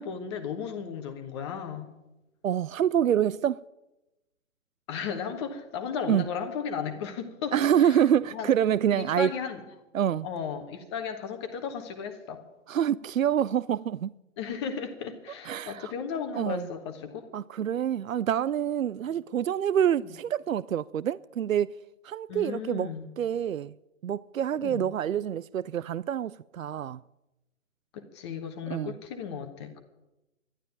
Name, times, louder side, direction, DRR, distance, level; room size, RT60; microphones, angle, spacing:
voice 1, 0.0-1.9 4.9-8.0 8.3-8.5 8.9-9.6 10.2-12.4 14.4-17.2 22.3-23.1 24.6-24.9 27.9-29.8, left 6 dB, 20° left, 1.1 m, -35 dB
voice 2, 2.4-3.6 6.1-6.2 7.5-9.3 9.9-10.3 12.7-14.1 15.5-15.9 16.4-16.7 17.3-21.7 22.0-22.9 23.2-23.7 24.0-27.0 28.7-29.0, right 9 dB, 85° right, 0.5 m, -26 dB
12.0 x 11.5 x 9.1 m
figure-of-eight pair, 140°, 39 cm